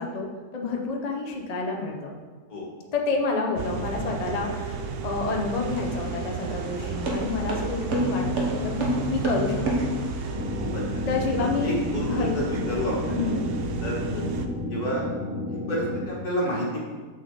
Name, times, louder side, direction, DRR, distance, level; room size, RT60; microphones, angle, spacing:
voice 1, 0.0-2.2 2.9-8.2 8.6-9.9 11.1-11.8 12.1-12.5 13.1-13.5 14.1-14.3, left 3 dB, 35° left, 1 dB, 0.7 m, -29 dB
sound 1, 3.6-14.5, right 4 dB, 80° right, 0.5 m, -33 dB
sound 2, 5.7-10.3, equal, 50° right, 1.5 m, -29 dB
sound 3, 10.3-16.0, left 2 dB, 10° right, 0.5 m, -32 dB
voice 2, 11.6-13.2 13.8-14.0 14.7-15.1 15.5-16.8, equal, 70° left, -5 dB, 2.4 m, -29 dB
7.2 x 6.5 x 3.9 m, 1.4 s
omnidirectional pair, 1.7 m